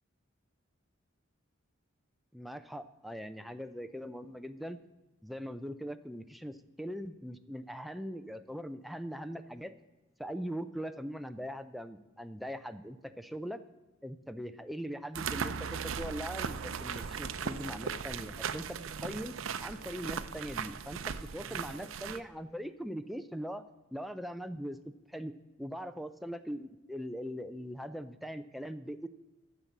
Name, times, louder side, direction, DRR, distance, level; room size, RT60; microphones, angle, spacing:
voice 1, 2.3-4.8 5.2-9.7 10.2-13.6 14.0-19.3 19.6-23.6 23.9-24.8 25.1-25.3 25.6-29.1, equal, ahead, 8 dB, 0.4 m, -41 dB
sound 1, 15.1-22.2, right 6 dB, 85° right, 0.6 m, -38 dB
11.0 x 6.8 x 7.2 m, 1.1 s
head